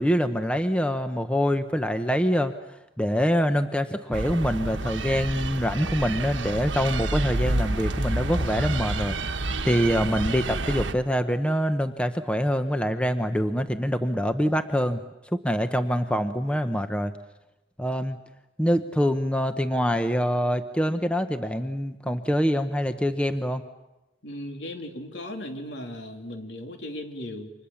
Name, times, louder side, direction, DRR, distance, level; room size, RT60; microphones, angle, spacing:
voice 1, 0.0-2.5 3.0-15.0 15.3-17.1 17.8-18.2 18.6-23.6, equal, 5° left, 8 dB, 0.9 m, -25 dB
sound 1, 4.1-10.9, right 2 dB, 85° right, 1.4 m, -29 dB
voice 2, 24.2-27.5, left 1 dB, 70° left, 4 dB, 3.4 m, -37 dB
29.5 x 25.5 x 7.2 m, 0.98 s
head